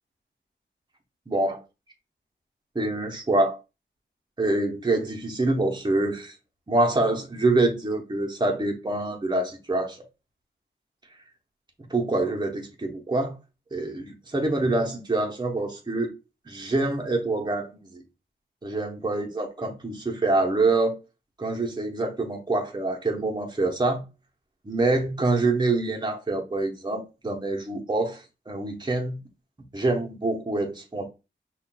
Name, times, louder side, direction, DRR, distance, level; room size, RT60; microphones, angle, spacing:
voice 1, 1.3-1.6 2.7-3.6 4.4-6.3 6.7-10.0 11.9-13.3 13.7-16.1 16.5-18.0 18.6-21.0 21.4-24.0 24.6-29.2 29.7-31.1, right 2 dB, 20° right, 0.8 m, -26 dB
5.5 x 2.4 x 2.2 m
wide cardioid pair, 70°, 20 cm